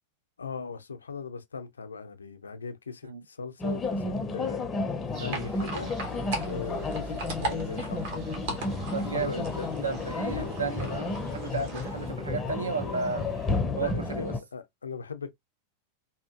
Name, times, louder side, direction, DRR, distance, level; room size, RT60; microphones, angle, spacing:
voice 1, 0.4-4.6 5.2-5.9 6.4-8.2 8.6-9.7 10.4-10.7 13.7-15.3, left 5 dB, 75° left, 0.4 m, -39 dB
sound 1, 3.6-14.4, left 3 dB, 20° left, 0.5 m, -32 dB
sound 2, 5.1-13.6, right 4 dB, 35° right, 1.2 m, -50 dB
sound 3, 5.3-12.1, right 3 dB, 55° right, 0.9 m, -38 dB
voice 2, 8.9-9.4 9.8-13.2 13.8-14.3, right 4 dB, 75° right, 0.5 m, -33 dB
2.7 x 2.4 x 2.3 m
figure-of-eight pair, 90°, 0 cm